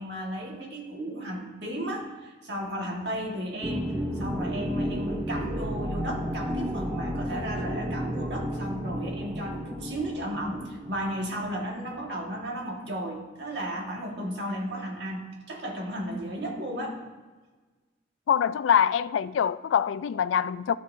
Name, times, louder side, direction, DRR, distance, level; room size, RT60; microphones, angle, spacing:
voice 1, 0.0-3.9 4.2-17.0, equal, 60° right, 1.8 m, -34 dB
sound 1, 3.6-12.1, equal, 15° right, 0.8 m, -32 dB
voice 2, 18.3-20.8, left 8 dB, 75° left, 0.3 m, -24 dB
12.5 x 7.7 x 2.7 m
head